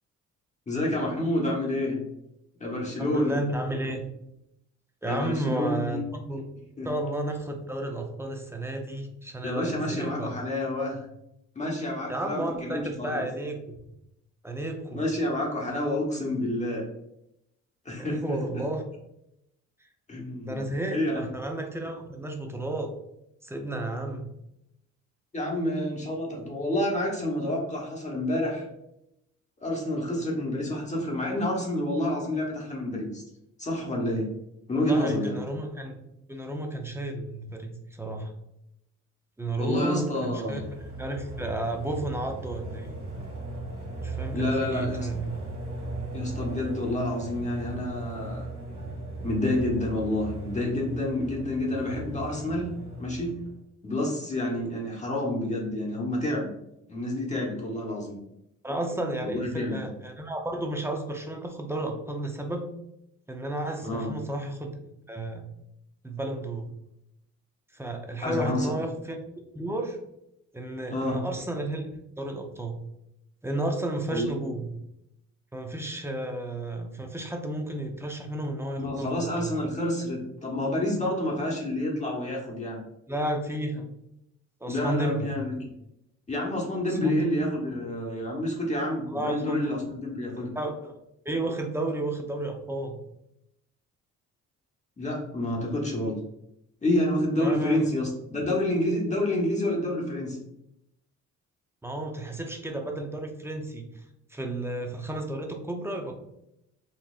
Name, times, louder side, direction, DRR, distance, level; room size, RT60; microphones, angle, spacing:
voice 1, 0.7-2.0 2.6-3.3 5.0-6.0 6.8-6.9 9.4-11.0 11.5-13.2 14.9-16.8 17.8-18.6 20.1-20.6 20.9-21.2 25.3-28.7 29.6-33.2 33.6-34.3 34.7-35.4 39.5-40.6 44.3-45.1 46.1-48.4 48.8-48.9 49.2-52.7 53.0-53.4 53.8-56.5 56.9-58.2 59.2-59.9 63.8-64.1 68.2-68.8 70.9-71.2 74.1-74.3 78.8-82.8 84.7-85.7 86.3-90.5 95.0-96.1 96.8-100.4, left 1 dB, 25° left, -2 dB, 1.0 m, -28 dB
voice 2, 3.0-4.1 5.0-6.4 6.8-10.3 12.1-13.8 14.4-15.0 18.0-18.8 20.4-22.9 23.4-24.3 34.9-36.0 36.3-38.3 39.4-43.0 44.0-45.3 58.6-62.7 63.3-64.8 65.1-65.4 66.0-66.7 67.7-69.2 69.5-70.0 70.5-71.9 72.2-72.8 73.4-74.7 75.5-79.5 83.1-83.9 84.6-85.4 86.9-87.3 89.1-89.6 90.4-90.9 91.2-93.0 97.4-97.8 101.8-104.0 104.3-106.1, right 1 dB, 10° right, 3 dB, 0.5 m, -32 dB
sound 1, 40.5-53.6, right 2 dB, 35° right, 1.5 m, -37 dB
4.1 x 2.6 x 2.4 m, 0.81 s
cardioid pair, 90°, 30 cm